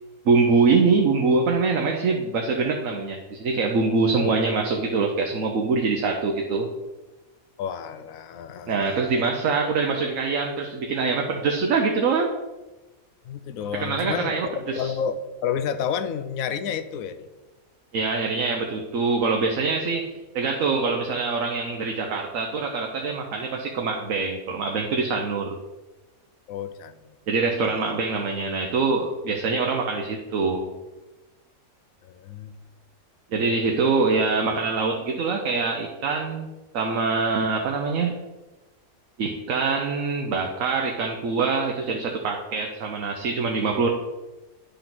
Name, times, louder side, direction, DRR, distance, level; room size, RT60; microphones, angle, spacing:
voice 1, 0.2-6.7 8.7-12.3 13.8-14.9 17.9-20.1 20.3-25.6 27.3-30.7 33.3-36.5 36.7-38.2 39.2-43.9, right 4 dB, 65° right, 2 dB, 1.2 m, -24 dB
voice 2, 7.6-9.1 13.3-17.3 26.5-27.1 32.0-32.6, left 7 dB, 75° left, 12 dB, 1.0 m, -31 dB
10.0 x 3.9 x 5.9 m, 1.1 s
omnidirectional pair, 1.5 m